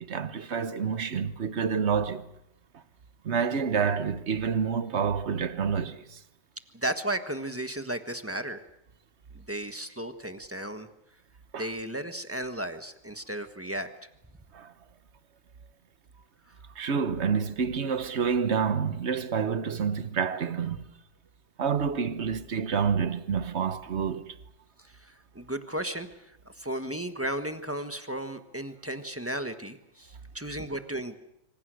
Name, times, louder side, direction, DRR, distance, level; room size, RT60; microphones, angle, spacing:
voice 1, 0.0-2.2 3.2-6.2 11.5-11.7 14.5-14.7 16.8-20.8 21.6-24.3, right 6 dB, 45° right, 1.0 m, -28 dB
voice 2, 6.7-8.6 9.3-10.9 11.6-13.9 25.0-26.3 26.6-31.2, right 1 dB, 10° right, 1.0 m, -34 dB
25.5 x 25.5 x 6.4 m
omnidirectional pair, 2.1 m